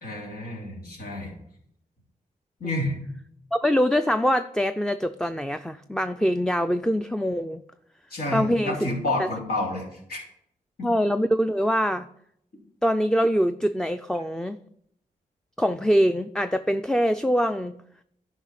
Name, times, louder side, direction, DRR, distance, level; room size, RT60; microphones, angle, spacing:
voice 1, 0.0-1.3 2.6-3.0 8.1-10.2 10.8-10.9, left 1 dB, 80° left, -2 dB, 3.4 m, -29 dB
voice 2, 3.5-7.6 8.3-8.8 9.2-9.3 10.8-12.1 12.8-14.6 15.6-17.7, equal, 5° left, 9 dB, 0.4 m, -23 dB
10.5 x 5.5 x 5.9 m, 0.71 s
cardioid pair, 70°, 15 cm